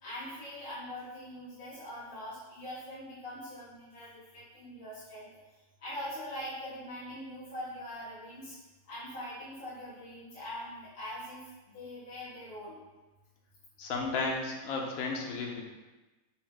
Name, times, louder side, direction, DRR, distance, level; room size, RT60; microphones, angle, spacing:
voice 1, 0.0-5.3 5.8-8.5 8.9-12.8, left 1 dB, 45° left, -11 dB, 1.4 m, -42 dB
voice 2, 13.8-15.7, left 3 dB, 90° left, 0 dB, 1.1 m, -33 dB
4.4 x 2.1 x 4.3 m, 1.1 s
omnidirectional pair, 1.5 m